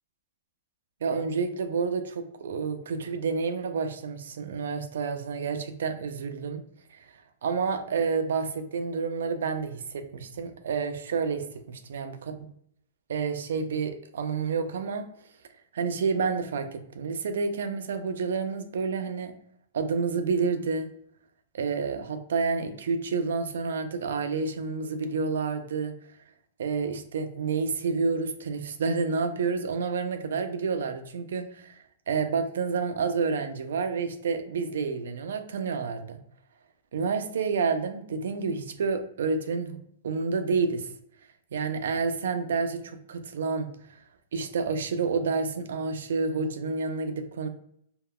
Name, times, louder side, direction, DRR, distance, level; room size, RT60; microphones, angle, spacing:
voice 1, 1.0-6.6 7.0-7.1 7.4-12.2 13.1-15.1 15.7-19.3 19.7-20.9 21.5-26.0 26.6-31.8 32.1-36.2 36.9-39.8 40.0-40.9 41.5-43.7 44.3-47.5, right 5 dB, 80° right, 8 dB, 0.4 m, -29 dB
3.5 x 2.2 x 2.2 m, 0.68 s
hypercardioid pair, 160°, 0 cm